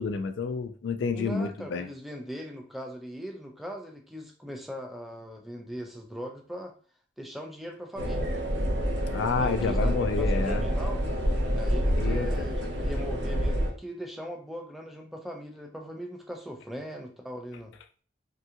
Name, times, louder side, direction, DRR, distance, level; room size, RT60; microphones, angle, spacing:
voice 1, 0.0-1.9 9.1-10.7 11.9-12.4, left 5 dB, 75° left, 10 dB, 0.3 m, -29 dB
voice 2, 1.1-6.7 7.2-8.3 9.4-11.0 11.5-17.7, equal, ahead, 2 dB, 0.4 m, -40 dB
sound 1, 8.0-13.7, equal, 70° right, 0.7 m, -27 dB
3.6 x 2.2 x 2.8 m, 0.43 s
head